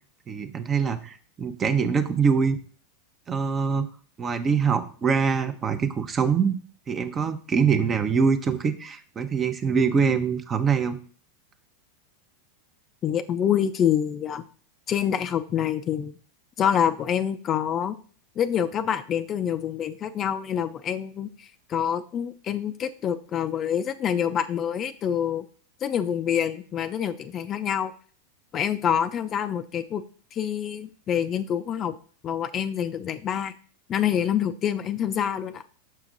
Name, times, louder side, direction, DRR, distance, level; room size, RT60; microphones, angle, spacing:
voice 1, 0.3-2.6 3.3-3.9 4.2-6.5 6.9-11.0, right 6 dB, 25° right, 9 dB, 0.8 m, -24 dB
voice 2, 13.0-14.4 14.9-16.1 16.6-18.0 18.4-21.3 21.7-25.4 25.8-27.9 28.5-30.0 30.3-31.9 32.2-33.5 33.9-35.6, left 9 dB, 35° left, 11 dB, 0.4 m, -26 dB
6.1 x 5.8 x 3.9 m, 0.43 s
hypercardioid pair, 100°, 0 cm